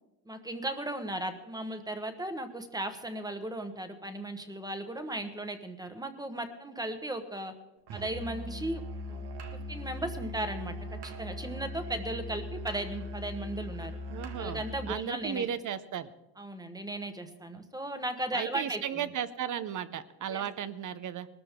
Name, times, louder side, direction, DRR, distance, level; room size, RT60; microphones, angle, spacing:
voice 1, 0.3-7.5 7.9-9.2 9.5-14.0 14.4-15.5 16.4-19.1 20.3-20.5, right 1 dB, 10° right, 8 dB, 1.1 m, -36 dB
Musical instrument, 7.9-15.0, left 1 dB, 80° right, 1.7 m, -40 dB
voice 2, 14.1-16.1 18.3-21.3, right 9 dB, 50° right, 14 dB, 0.8 m, -35 dB
21.0 x 13.0 x 3.7 m, 0.96 s
cardioid pair, 150°, 39 cm